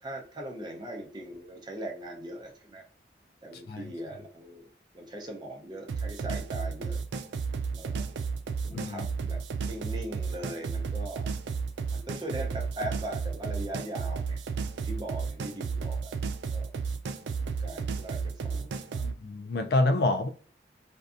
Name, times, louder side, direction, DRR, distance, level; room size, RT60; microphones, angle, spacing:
voice 1, 0.0-2.8 3.4-4.7 4.9-7.0 7.7-8.3 8.6-11.3 11.9-14.4 14.7-16.1 16.5-16.7 17.4-19.1, right 1 dB, 25° right, 0.5 m, -40 dB
sound 1, 5.9-19.1, right 5 dB, 75° right, 0.3 m, -33 dB
voice 2, 8.7-9.1 19.0-20.3, left 2 dB, 60° left, 0.4 m, -27 dB
2.6 x 2.2 x 2.4 m
head